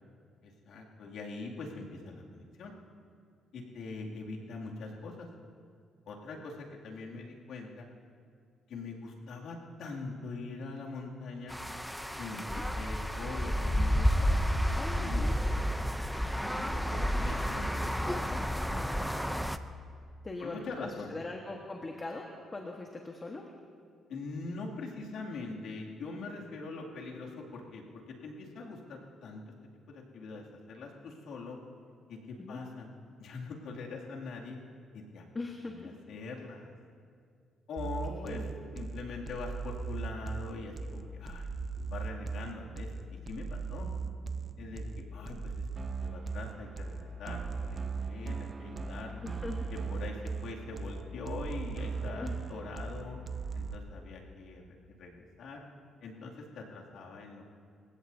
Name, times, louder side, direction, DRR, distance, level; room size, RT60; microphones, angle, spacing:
voice 1, 0.4-2.7 3.5-5.3 6.1-7.9 8.7-11.6 12.2-15.3 16.6-19.0 20.4-21.2 24.1-29.4 29.9-31.6 32.1-32.9 33.2-34.6 34.9-35.3 35.6-36.7 37.7-38.4 38.7-41.5 41.9-43.9 44.6-45.6 46.0-49.2 49.7-53.2 53.5-54.6 55.0-55.6 56.0-57.6, left 3 dB, 75° left, -2 dB, 2.6 m, -43 dB
sound 1, 11.5-19.6, equal, ahead, 0.6 m, -31 dB
voice 2, 14.7-15.4 16.4-16.7 19.3-19.5 20.2-23.4 32.4-32.6 35.3-35.9 38.1-38.5 49.2-49.7 52.2-52.4, left 3 dB, 25° left, 1 dB, 1.4 m, -41 dB
sound 2, 37.8-53.8, right 4 dB, 35° right, 0.8 m, -38 dB
28.0 x 16.0 x 2.8 m, 2.2 s
cardioid pair, 90°, 0 cm